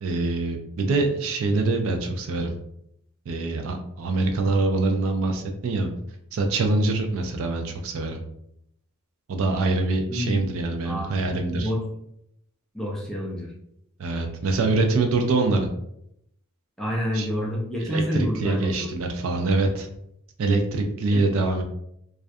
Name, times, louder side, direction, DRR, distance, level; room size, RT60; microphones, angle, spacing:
voice 1, 0.0-2.5 3.3-5.9 6.3-8.2 9.3-11.7 14.0-15.7 17.1-17.3 17.9-19.9 20.4-21.6, right 3 dB, 65° right, 4 dB, 0.4 m, -24 dB
voice 2, 11.5-11.8 12.7-13.5 16.8-18.9 21.1-21.3, equal, ahead, -3 dB, 0.4 m, -28 dB
2.3 x 2.1 x 2.6 m, 0.76 s
head